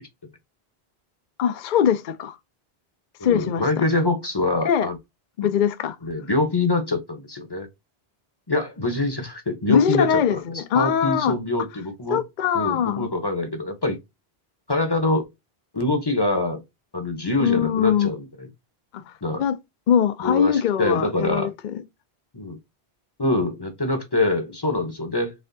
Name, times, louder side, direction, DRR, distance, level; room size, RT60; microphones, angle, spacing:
voice 1, 1.4-2.4 3.2-3.6 4.6-4.9 5.4-6.0 9.7-11.4 12.1-13.1 17.4-18.1 19.1-19.2 19.4-19.5 19.9-21.8, left 8 dB, 55° left, 0.6 m, -22 dB
voice 2, 3.2-5.0 5.4-5.5 6.0-7.7 8.5-10.4 10.7-12.2 12.5-14.0 14.7-15.2 15.7-16.6 16.9-18.5 19.2-19.4 20.2-21.5 22.3-22.6 23.2-25.3, left 2 dB, 25° left, 0.8 m, -24 dB
4.2 x 3.6 x 2.6 m
omnidirectional pair, 1.1 m